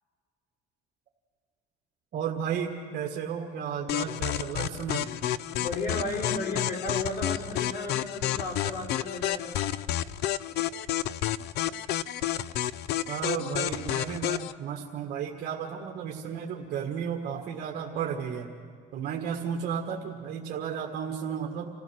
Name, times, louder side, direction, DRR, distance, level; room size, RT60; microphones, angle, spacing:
voice 1, 2.1-5.1 13.1-18.5 18.9-21.7, right 7 dB, 65° right, 1 dB, 1.7 m, -33 dB
sound 1, 3.9-14.5, left 12 dB, 75° left, 0.5 m, -30 dB
voice 2, 5.5-9.4, left 2 dB, 60° left, 2 dB, 4.1 m, -34 dB
28.0 x 15.0 x 6.3 m, 2.2 s
cardioid pair, 110°, 17 cm